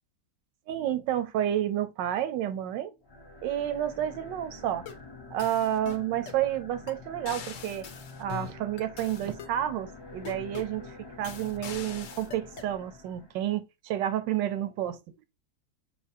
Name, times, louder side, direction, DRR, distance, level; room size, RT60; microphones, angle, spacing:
voice 1, 0.7-3.0 3.4-4.9 5.3-7.9 8.2-15.0, right 11 dB, 85° right, 1.3 m, -30 dB
sound 1, 3.0-13.5, left 3 dB, 30° left, 0.4 m, -47 dB
sound 2, 4.6-5.1 5.4-6.4 6.9-7.0 7.3-9.6 10.2-10.8 11.2-12.7, left 8 dB, 60° left, 0.8 m, -43 dB
5.7 x 2.9 x 2.6 m
omnidirectional pair, 1.9 m